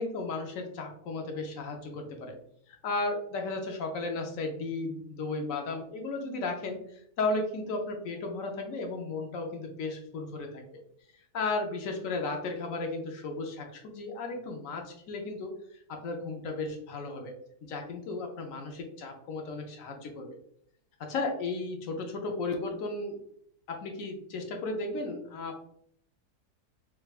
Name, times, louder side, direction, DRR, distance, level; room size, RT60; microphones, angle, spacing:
voice 1, 0.0-2.4 2.7-6.9 7.2-10.8 11.3-15.6 15.9-17.3 17.6-20.4 21.0-23.2 23.7-25.6, left 3 dB, 65° left, 3 dB, 0.9 m, -34 dB
3.4 x 3.3 x 2.3 m, 0.68 s
omnidirectional pair, 1.7 m